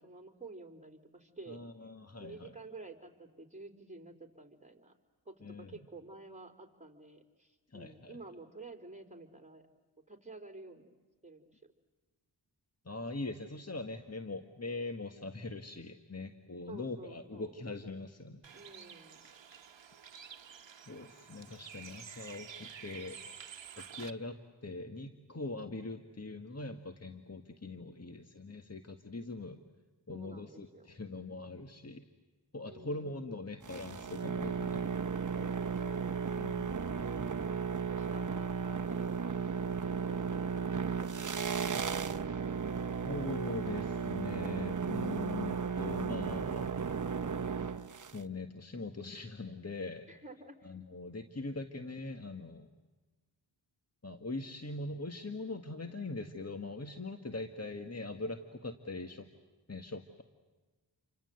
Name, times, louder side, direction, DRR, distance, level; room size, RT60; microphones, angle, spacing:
voice 1, 0.0-1.6 2.2-4.9 5.3-9.6 10.1-10.9 11.2-11.6 16.7-17.6 18.5-19.3 30.1-31.0 32.7-33.3 35.5-36.2 37.9-39.4 50.1-50.8, right 3 dB, 15° right, 5 dB, 4.0 m, -51 dB
voice 2, 1.5-2.5 5.4-5.8 7.7-8.1 12.8-18.4 20.9-23.2 23.8-24.4 24.6-29.6 30.1-32.0 32.5-35.0 35.3-35.6 36.4-36.7 43.0-46.8 48.1-50.1 50.6-52.7 54.0-59.3 59.7-60.2, left 2 dB, 35° left, 6 dB, 1.7 m, -42 dB
Bird, 18.4-24.1, right 7 dB, 75° right, 1.1 m, -50 dB
sound 1, 33.6-48.2, right 6 dB, 40° right, 1.0 m, -35 dB
29.5 x 25.0 x 8.0 m, 1.3 s
cardioid pair, 45°, 46 cm